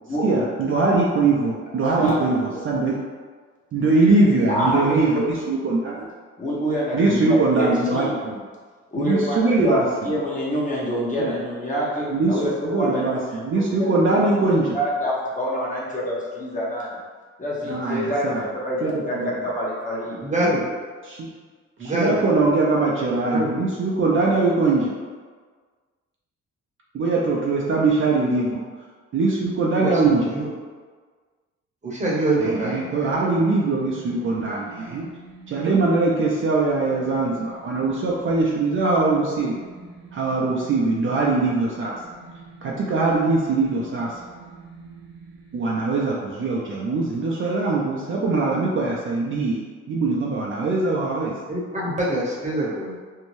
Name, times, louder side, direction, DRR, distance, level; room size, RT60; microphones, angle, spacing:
voice 1, 0.2-3.0 3.7-6.1 6.9-8.4 9.0-10.1 11.2-11.3 12.1-14.8 17.6-18.5 18.8-19.3 20.4-20.5 21.0-21.3 21.8-24.9 26.9-28.6 29.1-30.3 32.4-35.0 35.5-39.6 40.1-41.9 42.6-44.2 45.5-51.4, right 3 dB, 45° right, -4 dB, 0.4 m, -22 dB
voice 2, 1.9-2.4 4.5-5.2 6.4-8.1 8.9-13.9 14.7-17.0 17.4-20.2, equal, 25° left, -6 dB, 0.8 m, -26 dB
voice 3, 20.2-20.6 21.8-22.2 23.3-23.5 29.8-30.5 31.8-33.1 51.5-53.0, right 1 dB, 25° right, -5 dB, 0.8 m, -24 dB
sound 1, 32.0-45.8, right 5 dB, 70° right, 0.7 m, -45 dB
2.6 x 2.2 x 3.0 m, 1.5 s
cardioid pair, 90°, 30 cm